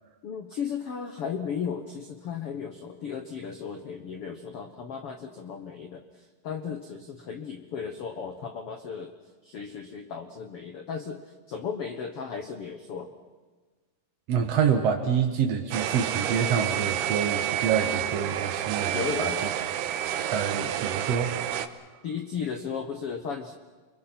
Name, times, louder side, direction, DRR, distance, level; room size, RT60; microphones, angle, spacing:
voice 1, 0.2-9.1 9.4-13.1 18.9-19.4 22.0-23.5, left 6 dB, 80° left, 6 dB, 1.3 m, -35 dB
voice 2, 14.3-19.5 20.3-21.4, right 7 dB, 60° right, 4 dB, 1.7 m, -27 dB
sound 1, 15.7-21.7, right 11 dB, 85° right, 3.0 m, -29 dB
29.0 x 23.0 x 6.0 m, 1.4 s
omnidirectional pair, 4.5 m